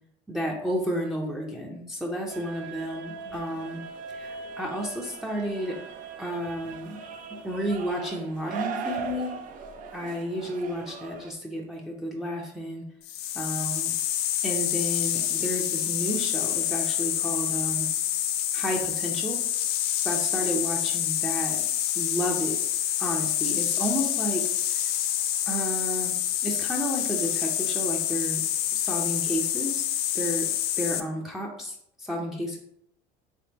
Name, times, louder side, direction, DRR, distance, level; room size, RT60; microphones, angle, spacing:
voice 1, 0.3-3.8 4.1-5.8 6.2-7.0 7.4-9.3 9.9-12.8 13.3-13.9 14.4-17.9 18.5-19.4 20.0-21.6 22.0-22.6 23.0-24.4 24.7-24.8 25.5-26.1 26.4-28.4 28.7-29.8 30.1-30.5 30.8-32.6, equal, ahead, -2 dB, 0.5 m, -31 dB
sound 1, 2.3-11.3, right 5 dB, 55° right, 0.5 m, -39 dB
sound 2, 13.0-31.0, left 11 dB, 70° left, 0.4 m, -27 dB
3.5 x 3.4 x 2.8 m, 0.72 s
cardioid pair, 115°, 17 cm